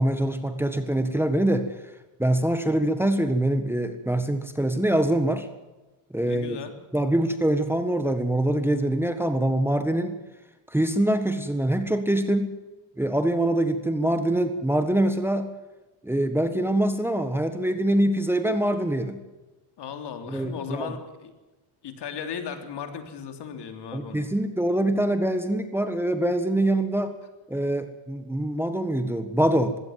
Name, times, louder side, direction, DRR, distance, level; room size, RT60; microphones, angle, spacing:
voice 1, 0.0-1.7 2.2-5.5 6.1-6.6 6.9-10.2 10.7-12.5 13.0-15.5 16.0-19.2 20.3-20.9 23.9-27.2 27.5-29.8, right 1 dB, 5° right, 8 dB, 1.5 m, -24 dB
voice 2, 6.2-6.7 19.8-21.3 21.8-24.3, left 7 dB, 55° left, 6 dB, 3.5 m, -36 dB
21.0 x 17.0 x 7.7 m, 1.1 s
cardioid pair, 115°, 47 cm